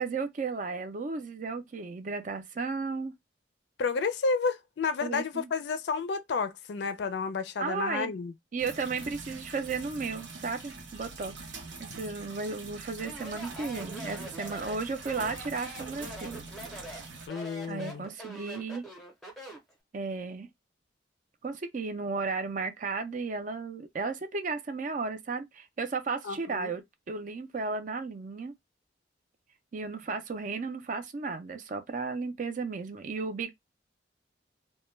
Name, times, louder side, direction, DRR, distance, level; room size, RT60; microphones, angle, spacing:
voice 1, 0.0-3.1 5.0-5.5 7.6-8.1 8.5-11.3 11.8-16.4 17.7-18.8 19.9-20.5 21.4-26.8 27.1-28.5 29.7-33.5, right 4 dB, 45° right, 0.4 m, -34 dB
voice 2, 3.8-8.3 11.9-12.0 17.3-18.1 26.2-26.7, left 5 dB, 70° left, 0.4 m, -31 dB
sound 1, 8.6-17.3, right 3 dB, 80° right, 0.7 m, -44 dB
Speech, 13.0-19.7, right 1 dB, ahead, 0.7 m, -44 dB
2.2 x 2.1 x 3.1 m
head